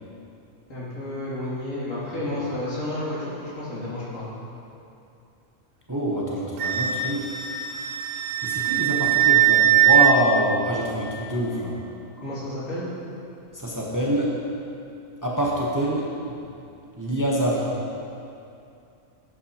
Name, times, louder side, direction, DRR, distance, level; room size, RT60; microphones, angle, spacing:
voice 1, 0.7-4.4 12.2-12.8, left 1 dB, 80° left, -9 dB, 2.9 m, -31 dB
voice 2, 5.9-7.4 8.4-11.8 13.5-14.4 15.2-16.4 17.0-17.7, right 1 dB, 15° right, -4 dB, 0.9 m, -25 dB
Wind instrument woodwind instrument, 6.6-10.1, right 10 dB, 65° right, 0.6 m, -20 dB
11.0 x 8.4 x 2.9 m, 2.6 s
omnidirectional pair, 1.4 m